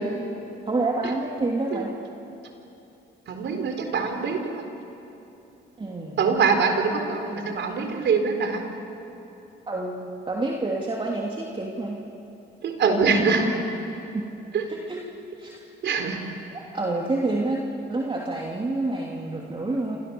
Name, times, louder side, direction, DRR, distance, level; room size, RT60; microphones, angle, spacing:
voice 1, 0.7-1.9 5.8-6.3 9.7-12.0 14.1-14.2 14.9-15.0 15.4-15.7 16.5-20.0, right 2 dB, 25° right, -2 dB, 3.0 m, -28 dB
voice 2, 3.3-4.6 6.2-8.6 12.6-13.5 14.5-14.6 15.8-16.2, right 5 dB, 65° right, 4 dB, 4.3 m, -23 dB
30.0 x 27.0 x 7.1 m, 3.0 s
cardioid pair, 90°, 20 cm